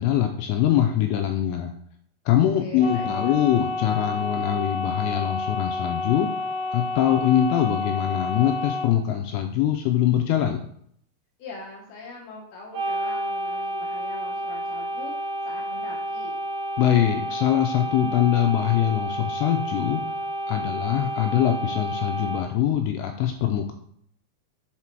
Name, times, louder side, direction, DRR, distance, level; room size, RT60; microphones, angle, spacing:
voice 1, 0.0-1.7 2.3-6.3 6.7-10.6 16.8-20.0 20.5-23.7, left 11 dB, 85° left, 5 dB, 2.4 m, -23 dB
voice 2, 2.4-3.3 11.4-16.4, left 3 dB, 70° left, -2 dB, 2.5 m, -42 dB
sound 1, 2.8-8.9 12.7-22.4, left 1 dB, 50° right, 1.7 m, -30 dB
7.3 x 4.0 x 4.4 m, 0.67 s
omnidirectional pair, 5.4 m